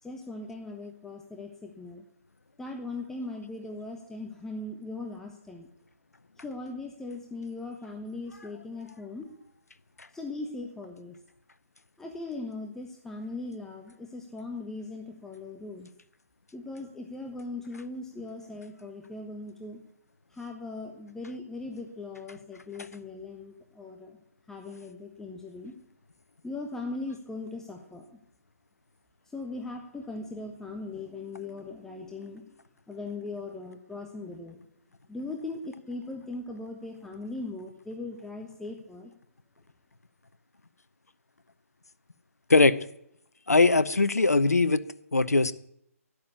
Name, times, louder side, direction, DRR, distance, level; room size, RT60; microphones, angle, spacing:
voice 1, 0.0-2.0 2.6-5.7 6.4-9.3 10.1-11.2 12.0-15.9 16.5-19.8 20.3-24.2 24.5-25.8 26.4-28.2 29.3-32.6 32.9-34.6 35.1-39.1, left 2 dB, 5° left, 2 dB, 1.2 m, -39 dB
voice 2, 43.5-44.8 45.1-45.5, left 3 dB, 85° left, 14 dB, 0.8 m, -20 dB
12.0 x 10.5 x 8.4 m, 0.74 s
figure-of-eight pair, 140°, 8 cm